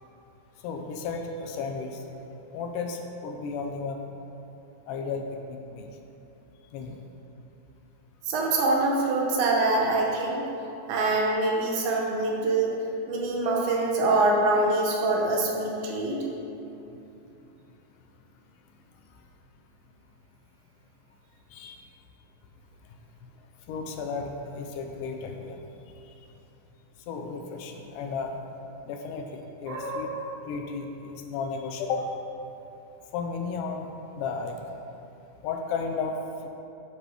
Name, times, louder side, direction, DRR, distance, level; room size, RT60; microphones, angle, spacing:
voice 1, 0.6-2.0 2.5-4.0 4.9-5.9 6.7-7.0 21.5-21.8 23.7-25.6 26.0-26.1 27.1-28.4 28.9-30.1 30.5-32.1 33.1-33.9 34.1-34.6 35.4-36.2, left 5 dB, 80° left, 4 dB, 2.0 m, -33 dB
voice 2, 8.3-10.4 10.9-12.7 13.1-16.2 29.7-30.3, right 2 dB, 70° right, -1 dB, 2.2 m, -25 dB
9.9 x 4.1 x 4.7 m, 2.9 s
omnidirectional pair, 3.8 m